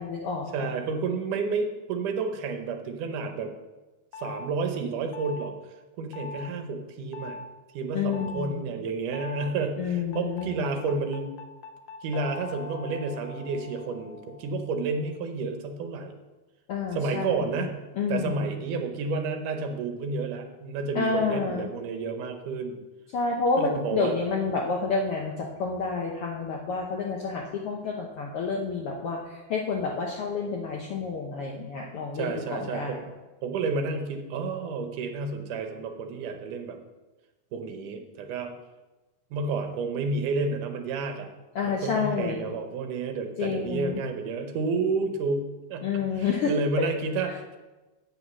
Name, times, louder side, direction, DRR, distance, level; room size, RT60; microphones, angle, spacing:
voice 1, 0.0-0.5 7.9-8.6 9.8-10.8 16.7-17.4 18.0-18.5 20.9-21.7 23.1-25.3 25.6-33.0 41.5-42.4 43.4-44.0 45.8-46.5 46.8-46.9, left 5 dB, 70° left, 0 dB, 1.3 m, -29 dB
voice 2, 0.5-3.5 4.2-5.5 6.0-7.4 7.7-11.4 12.0-16.1 16.9-17.8 18.1-22.8 23.6-24.2 32.1-33.0 33.4-36.8 37.5-38.5 39.3-41.3 41.6-47.6, right 4 dB, 75° right, 5 dB, 2.4 m, -30 dB
sound 1, 4.1-4.5 5.1-5.5 6.1-6.5 7.1-7.5 8.1-8.5 9.1-9.5 10.1-15.2, left 4 dB, 90° left, 2.5 m, -42 dB
8.5 x 8.3 x 6.2 m, 1.2 s
omnidirectional pair, 3.7 m